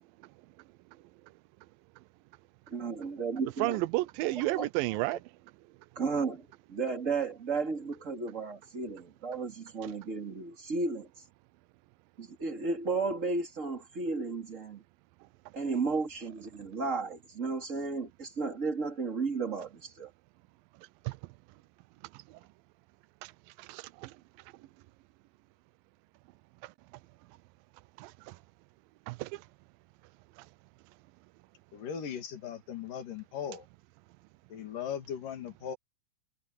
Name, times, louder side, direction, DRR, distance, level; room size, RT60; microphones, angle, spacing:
voice 1, 2.7-3.8 4.2-4.7 5.9-11.1 12.2-14.8 15.5-20.1, right 4 dB, 25° right, 2.9 m, -34 dB
voice 2, 3.6-5.2 21.1-21.2 23.2-23.3 23.6-24.1 28.0-28.3 29.1-29.4, right 19 dB, 85° right, 2.4 m, -32 dB
voice 3, 31.7-33.7 34.5-35.8, left 8 dB, 70° left, 3.9 m, -38 dB
omnidirectional pair, 4.0 m